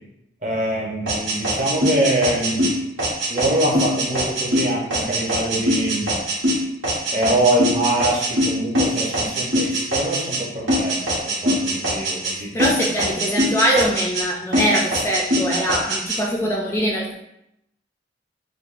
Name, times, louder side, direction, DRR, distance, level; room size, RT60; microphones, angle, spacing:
voice 1, 0.4-2.6 3.3-6.1 7.1-11.0 11.2-12.5, right 1 dB, 40° right, -3 dB, 0.9 m, -24 dB
sound 1, 1.1-10.4 10.7-12.3 12.6-14.3 14.5-16.2, equal, 90° right, 1.4 m, -22 dB
voice 2, 12.4-17.1, equal, 15° left, -3 dB, 0.4 m, -22 dB
6.3 x 2.2 x 2.5 m, 0.81 s
head